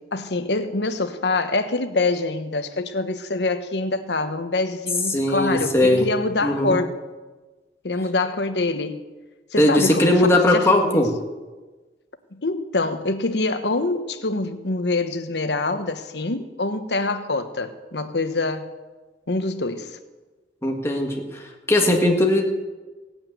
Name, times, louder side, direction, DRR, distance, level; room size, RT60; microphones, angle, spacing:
voice 1, 0.1-6.9 7.8-9.0 9.5-11.1 12.3-18.7 19.3-20.0, left 2 dB, 75° left, 9 dB, 1.1 m, -25 dB
voice 2, 5.1-6.1 6.4-6.8 9.6-11.1 20.6-22.5, left 1 dB, 15° left, 1 dB, 1.8 m, -19 dB
17.0 x 8.7 x 9.2 m, 1.2 s
head